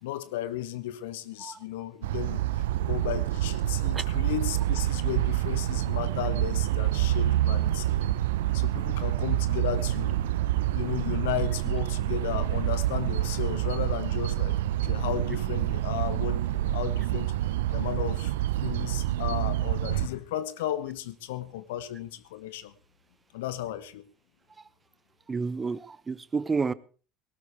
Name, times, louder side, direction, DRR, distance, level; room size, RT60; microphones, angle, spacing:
voice 1, 0.0-8.0 8.5-10.2 10.7-17.3 17.7-18.3 18.6-22.7 23.3-24.1, left 12 dB, 70° left, 1.1 m, -34 dB
sound 1, 2.0-20.1, right 13 dB, 70° right, 0.7 m, -27 dB
voice 2, 25.3-26.7, right 4 dB, 25° right, 0.9 m, -30 dB
19.0 x 18.0 x 3.4 m
figure-of-eight pair, 65°, 0 cm